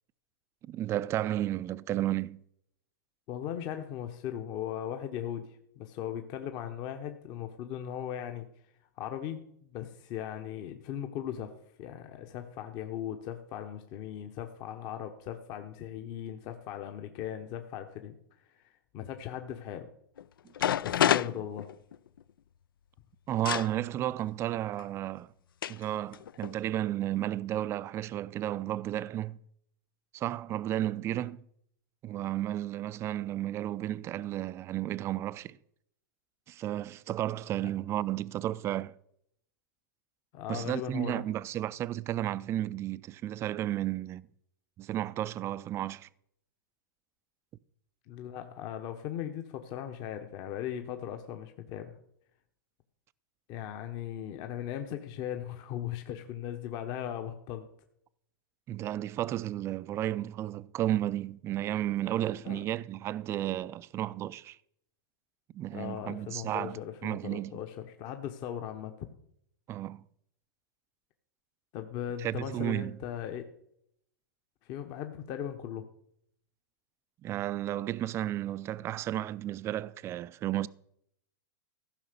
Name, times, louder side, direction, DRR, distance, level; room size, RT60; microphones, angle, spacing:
voice 1, 0.7-2.4 23.3-25.3 25.7-29.4 30.1-31.4 32.0-35.6 36.5-38.9 40.5-44.2 44.8-46.1 58.7-64.6 65.5-67.6 69.7-70.0 72.2-73.0 77.2-80.7, right 13 dB, 25° right, 0.4 m, -33 dB
voice 2, 3.3-8.5 9.0-11.5 11.8-18.1 18.5-19.9 20.8-21.7 40.3-41.2 48.1-51.9 53.5-57.7 62.4-62.6 65.7-68.9 71.7-73.4 74.6-75.9, left 10 dB, 40° left, 1.0 m, -38 dB
sound 1, 20.2-20.3 20.6-22.2 23.5-23.7 24.8-24.9 25.6-25.8 26.1-26.6, left 10 dB, 85° left, 0.4 m, -28 dB
15.0 x 5.7 x 6.7 m
hypercardioid pair, 135°, 11 cm